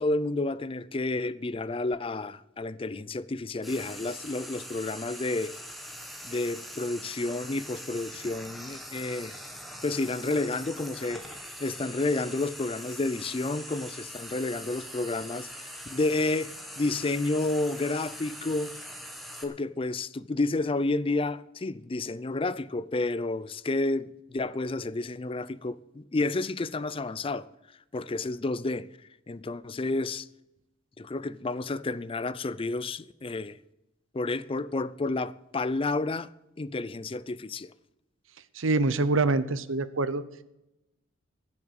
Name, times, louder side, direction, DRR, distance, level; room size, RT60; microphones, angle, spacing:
voice 1, 0.0-5.5 6.2-9.3 9.8-11.3 11.6-15.5 15.9-18.7 19.4-27.5 27.9-28.9 29.3-30.3 31.0-33.6 34.1-36.3 36.6-37.7, left 2 dB, 25° left, 0.4 m, -30 dB
Frying (food), 3.6-19.4, equal, ahead, 1.8 m, -42 dB
voice 2, 38.6-40.2, right 3 dB, 75° right, 0.8 m, -25 dB
15.5 x 7.3 x 8.2 m
head